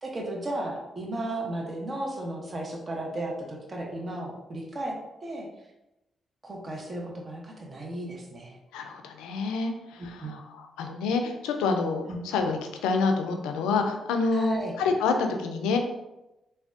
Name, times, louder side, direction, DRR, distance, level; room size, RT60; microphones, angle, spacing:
voice 1, 0.0-5.0 5.2-5.5 6.4-8.6 10.0-10.3 12.1-12.2 14.3-14.8, right 1 dB, 40° right, 0 dB, 0.7 m, -34 dB
voice 2, 8.7-15.8, left 4 dB, 90° left, 5 dB, 0.3 m, -28 dB
3.3 x 2.2 x 2.5 m, 0.95 s
supercardioid pair, 50°, 0 cm